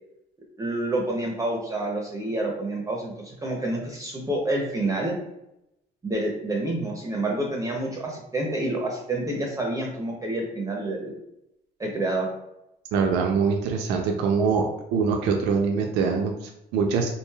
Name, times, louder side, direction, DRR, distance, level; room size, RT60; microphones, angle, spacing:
voice 1, 0.6-5.2 6.0-11.1 11.8-12.3, right 2 dB, 20° right, 0 dB, 0.5 m, -28 dB
voice 2, 12.9-14.7 14.9-17.1, right 5 dB, 90° right, 3 dB, 0.4 m, -23 dB
3.1 x 2.5 x 2.2 m, 0.85 s
cardioid pair, 110°, 17 cm